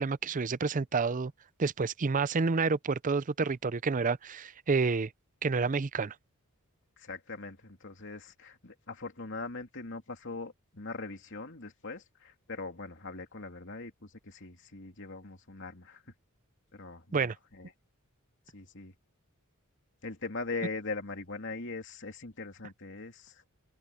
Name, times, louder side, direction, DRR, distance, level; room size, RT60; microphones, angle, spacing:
voice 1, 0.0-1.3 1.6-5.1 5.4-6.1 17.1-17.3, right 4 dB, 35° right, 0.5 m, -29 dB
voice 2, 7.0-16.0 16.7-17.7 18.5-18.9 20.0-23.4, left 3 dB, 55° left, 2.7 m, -41 dB
open air
head